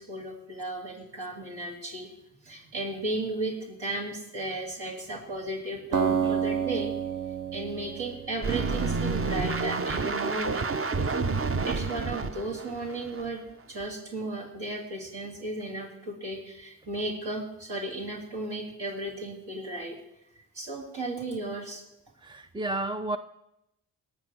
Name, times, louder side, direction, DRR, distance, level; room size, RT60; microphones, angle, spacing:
voice 1, 0.0-2.1 2.4-6.9 7.5-11.1 11.4-13.4 13.7-20.0 20.5-21.8, right 2 dB, 70° right, -2 dB, 3.2 m, -35 dB
Acoustic guitar, 5.9-9.1, right 8 dB, 50° right, 1.2 m, -30 dB
sound 1, 8.4-13.3 13.8-13.9, right 4 dB, 30° right, 0.8 m, -29 dB
voice 2, 22.2-23.2, right 2 dB, 10° right, 10 dB, 0.4 m, -32 dB
17.5 x 6.2 x 6.3 m, 0.86 s
supercardioid pair, 45°, 42 cm